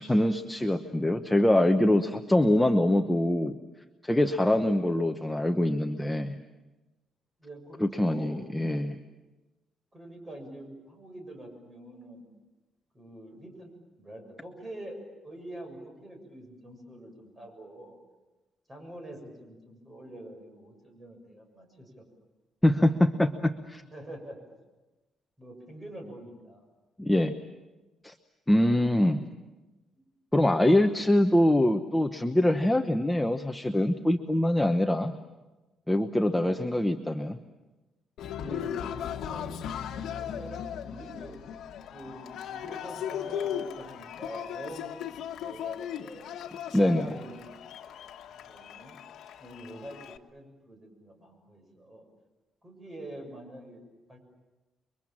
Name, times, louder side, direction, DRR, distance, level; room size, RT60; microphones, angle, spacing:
voice 1, 0.0-3.5 4.0-6.4 7.8-9.0 22.6-23.8 27.0-27.4 28.0-28.1 28.5-29.2 30.3-35.1 35.9-37.4 46.7-47.2, left 1 dB, 5° left, 5 dB, 0.9 m, -24 dB
voice 2, 4.5-4.9 7.4-8.4 8.8-8.9 9.9-12.2 12.9-13.7 14.0-15.0 15.2-18.0 18.7-22.0 23.9-24.4 25.4-26.7 36.3-36.8 38.3-39.5 40.1-41.4 41.9-46.3 46.8-47.6 48.0-48.1 48.5-49.0 49.4-52.1 52.6-54.2, right 1 dB, 20° right, 4 dB, 6.9 m, -45 dB
Cheering, 38.2-50.2, left 9 dB, 75° left, 1.5 m, -37 dB
30.0 x 23.5 x 7.4 m, 1.1 s
cardioid pair, 145°, 0 cm